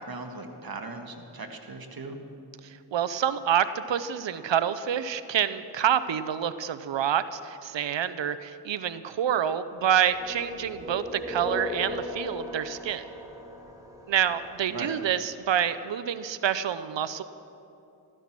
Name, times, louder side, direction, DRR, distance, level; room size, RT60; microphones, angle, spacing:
voice 1, 0.0-2.2 14.7-14.9, right 3 dB, 50° right, 4 dB, 1.9 m, -38 dB
voice 2, 2.9-13.0 14.1-17.2, right 9 dB, 75° right, 13 dB, 0.7 m, -27 dB
sound 1, 9.9-14.9, left 2 dB, 5° right, 3.4 m, -38 dB
14.5 x 14.0 x 6.0 m, 2.8 s
cardioid pair, 50°, 44 cm